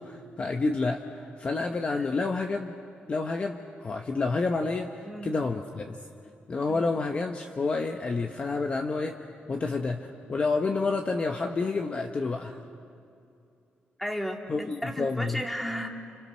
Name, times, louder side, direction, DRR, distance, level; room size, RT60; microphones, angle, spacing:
voice 1, 0.0-2.7 3.1-6.0 6.5-9.2 9.5-12.6 14.5-15.4, left 3 dB, 30° left, 4 dB, 1.2 m, -29 dB
voice 2, 14.0-15.9, equal, 5° left, 2 dB, 2.5 m, -34 dB
30.0 x 29.0 x 6.5 m, 2.5 s
wide cardioid pair, 150°, 4 cm